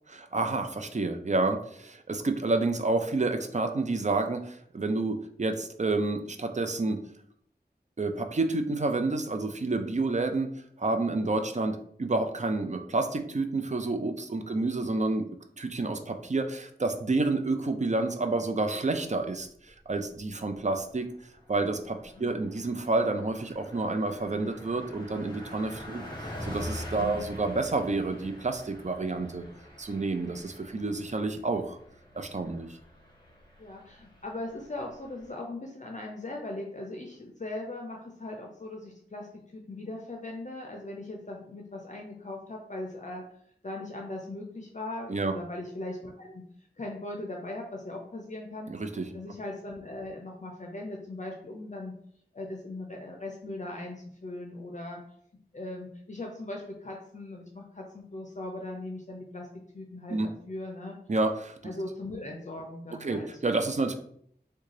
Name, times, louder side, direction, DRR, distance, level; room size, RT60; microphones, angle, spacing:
voice 1, 0.1-7.0 8.0-15.3 15.6-21.1 21.5-29.4 29.8-31.8 32.1-32.7 45.1-45.3 48.7-49.1 60.1-60.3 61.1-61.6 63.0-63.9, right 3 dB, 45° right, 7 dB, 0.4 m, -29 dB
Car passing by, 19.7-20.3 20.6-20.8 21.1-35.3, equal, 25° left, 1.0 m, -45 dB
voice 2, 33.6-43.2 43.6-46.4 46.8-48.7 49.1-51.9 52.3-55.0 55.5-59.5 59.7-61.0 61.6-63.3, left 2 dB, 45° left, 1 dB, 0.5 m, -39 dB
3.6 x 2.2 x 3.2 m, 0.65 s
wide cardioid pair, 40°, 17 cm